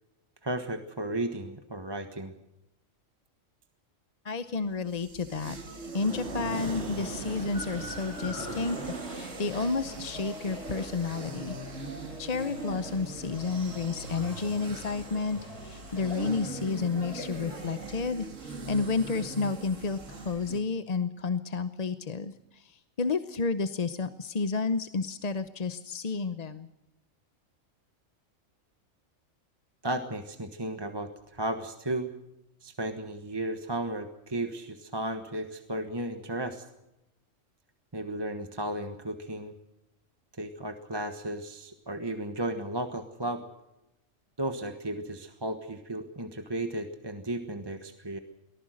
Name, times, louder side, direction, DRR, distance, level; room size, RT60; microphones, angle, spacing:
voice 1, 0.4-2.3 29.8-32.1 32.6-36.6 37.9-39.5 40.4-43.4 44.4-48.2, right 1 dB, 20° right, 6 dB, 1.3 m, -34 dB
voice 2, 4.2-11.6 12.2-26.7, left 4 dB, 35° left, 11 dB, 0.8 m, -31 dB
sound 1, 4.7-20.6, right 3 dB, 75° right, 2.2 m, -41 dB
Splash splatter, 5.9-9.9, right 2 dB, 55° right, 3.9 m, -41 dB
sound 2, 7.2-17.9, left 2 dB, 60° left, 5.2 m, -45 dB
24.0 x 18.5 x 6.4 m, 0.90 s
omnidirectional pair, 1.3 m